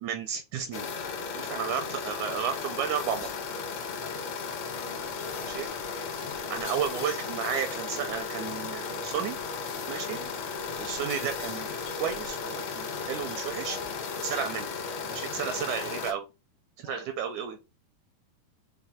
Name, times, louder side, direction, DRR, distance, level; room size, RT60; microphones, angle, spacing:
voice 1, 0.0-0.9 1.3-3.3 5.5-5.7 6.5-9.4 9.9-10.2 10.8-13.8 14.2-14.7 15.1-16.2 16.8-17.6, right 8 dB, 80° right, 1.7 m, -33 dB
sound 1, 0.7-16.1, left 5 dB, 70° left, 1.8 m, -35 dB
voice 2, 1.4-1.8 4.8-5.5 9.9-10.4 13.7-14.0 15.3-15.6 16.8-17.1, left 5 dB, 85° left, 2.7 m, -47 dB
6.0 x 2.3 x 3.5 m
omnidirectional pair, 4.0 m